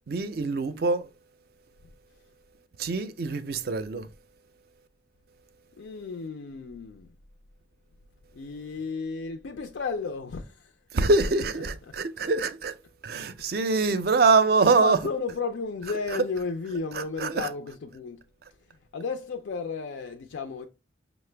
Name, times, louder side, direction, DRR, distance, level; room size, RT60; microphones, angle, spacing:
voice 1, 0.1-1.1 2.8-4.1 10.9-12.8 13.0-15.0 16.1-16.2 16.9-17.5, right 4 dB, 55° right, 0.4 m, -24 dB
voice 2, 5.8-7.1 8.3-10.7 14.1-14.3 14.8-18.2 18.9-20.6, left 4 dB, 85° left, 0.4 m, -33 dB
5.6 x 2.1 x 3.2 m
head